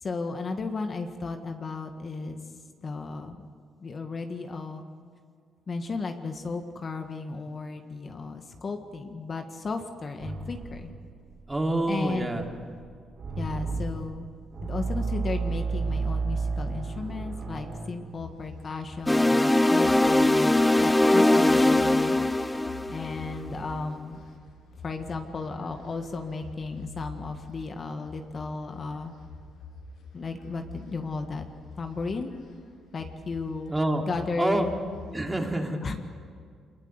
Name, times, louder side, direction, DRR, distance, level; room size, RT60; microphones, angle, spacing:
voice 1, 0.0-2.4 2.8-3.5 3.8-4.8 5.7-10.9 11.9-12.3 13.4-14.3 14.6-22.6 22.9-24.2 24.8-29.1 30.1-31.4 31.8-32.3 32.9-33.7 34.0-34.7 35.8-35.9, left 3 dB, 40° left, 5 dB, 1.8 m, -34 dB
sound 1, 10.2-17.9, right 4 dB, 45° right, 6.0 m, -32 dB
voice 2, 11.5-12.4 33.7-34.0 34.4-34.7 35.1-35.8, right 1 dB, 15° right, 2 dB, 3.0 m, -27 dB
sound 2, 18.1-35.2, left 3 dB, 80° left, 6.9 m, -47 dB
sound 3, 19.1-23.4, left 1 dB, 10° left, 0.7 m, -21 dB
24.5 x 21.0 x 8.2 m, 2.1 s
cardioid pair, 90°, 0 cm